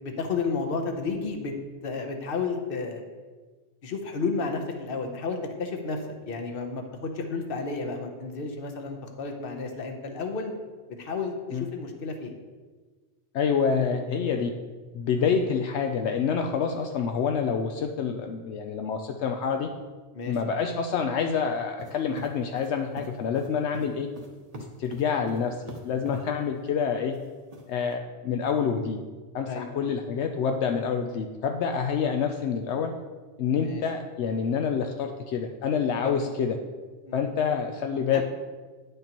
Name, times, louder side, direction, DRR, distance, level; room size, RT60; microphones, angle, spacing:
voice 1, 0.0-1.5 1.8-3.0 3.8-10.5 11.0-12.3 14.2-14.4 15.2-15.3 20.1-20.5 29.5-29.9 33.5-33.8 36.0-36.3 37.0-37.2 38.1-38.2, left 4 dB, 55° left, 4 dB, 1.0 m, -32 dB
voice 2, 13.3-14.5 14.9-19.7 20.3-24.1 24.8-27.2 27.7-29.0 29.3-32.9 33.4-36.6 37.1-38.2, left 6 dB, 75° left, 4 dB, 0.8 m, -27 dB
sound 1, 21.8-26.2 27.1-27.9, right 2 dB, 35° right, 0.9 m, -42 dB
9.9 x 6.6 x 3.0 m, 1.4 s
omnidirectional pair, 1.2 m